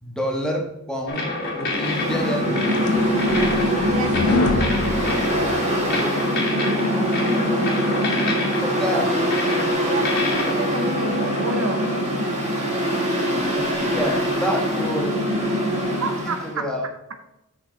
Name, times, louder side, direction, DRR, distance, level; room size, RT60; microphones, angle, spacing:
voice 1, 0.0-2.6 8.6-9.1 13.5-15.1 16.2-16.9, equal, 5° left, -1 dB, 1.3 m, -28 dB
sound 1, 1.1-12.8, left 2 dB, 45° left, 2.0 m, -28 dB
Mechanical fan, 1.6-16.5, equal, 30° right, 2.8 m, -23 dB
sound 2, 2.5-5.9, left 2 dB, 85° left, 0.8 m, -27 dB
voice 2, 3.8-7.0 8.7-9.0 9.8-11.9 16.0-16.7, right 3 dB, 65° right, 7 dB, 0.8 m, -30 dB
7.9 x 6.0 x 3.9 m, 0.88 s
head